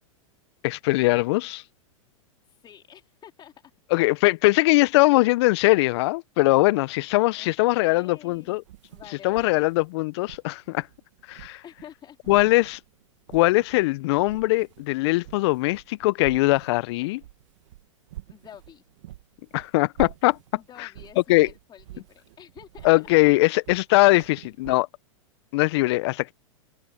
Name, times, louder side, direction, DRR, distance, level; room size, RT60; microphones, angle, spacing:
voice 1, 0.6-1.6 3.9-8.6 9.2-10.9 11.3-11.6 12.3-12.8 13.3-17.2 19.5-20.4 20.8-20.9 21.3-21.5 22.8-24.9 25.5-26.3, left 21 dB, 50° left, 1.0 m, -21 dB
voice 2, 2.5-3.5 7.3-8.6 8.9-9.8 11.6-12.4 18.3-18.8 20.5-23.3 24.3-24.5, left 9 dB, 25° left, 4.1 m, -49 dB
sound 1, 8.3-11.9 12.2-13.9 14.1-24.8, right 15 dB, 60° right, 2.0 m, -46 dB
hypercardioid pair, 105°, 17 cm